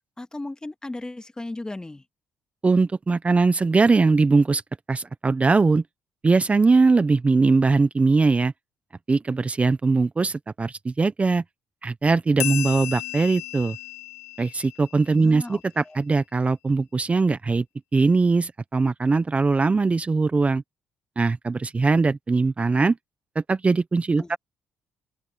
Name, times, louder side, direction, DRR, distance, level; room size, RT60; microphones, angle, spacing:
voice 1, 0.2-2.1 15.1-16.0 24.2-24.4, left 2 dB, 15° left, 1.8 m, -36 dB
voice 2, 2.6-4.6 4.9-5.8 6.2-8.5 9.1-11.4 11.8-13.8 14.4-17.6 17.9-20.6 21.2-23.0 23.3-24.4, right 3 dB, 25° right, 0.8 m, -21 dB
sound 1, 12.4-15.4, left 18 dB, 90° left, 2.7 m, -34 dB
open air
supercardioid pair, 75°, 5 cm